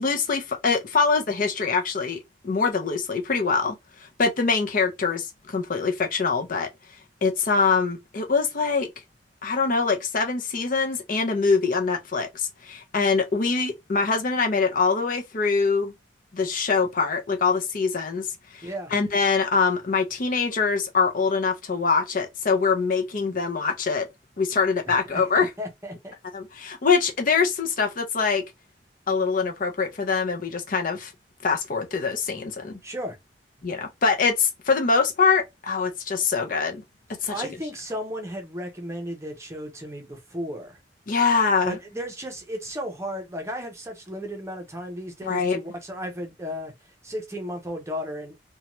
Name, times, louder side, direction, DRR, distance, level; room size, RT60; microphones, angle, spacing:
voice 1, 0.0-3.8 4.2-6.7 7.2-8.9 9.4-15.9 16.3-18.3 18.5-24.1 24.4-25.5 26.3-28.4 29.1-31.1 31.4-32.8 33.6-36.8 37.2-37.5 41.1-41.8 45.3-45.6, left 5 dB, 50° left, 0.6 m, -24 dB
voice 2, 18.6-18.9 25.1-26.1 32.8-33.2 37.3-40.8 41.6-46.7 47.0-48.4, equal, 15° right, 0.7 m, -34 dB
2.7 x 2.3 x 2.9 m
head